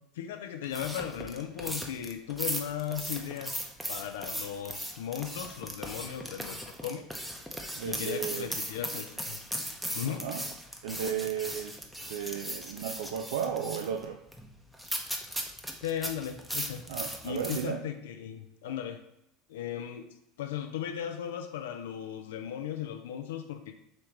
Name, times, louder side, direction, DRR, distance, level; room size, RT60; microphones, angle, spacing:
voice 1, 0.1-7.1 7.8-9.4 9.9-10.2 15.8-16.9 17.2-19.0 19.5-23.8, left 9 dB, 80° left, 6 dB, 0.3 m, -37 dB
sound 1, 0.6-17.7, equal, 5° right, 0.7 m, -38 dB
voice 2, 7.7-8.5 10.1-10.4 10.8-11.7 12.1-14.2 16.9-17.8 18.6-18.7, right 8 dB, 80° right, 4 dB, 0.3 m, -34 dB
5.1 x 3.1 x 3.0 m, 0.82 s
hypercardioid pair, 80°, 0 cm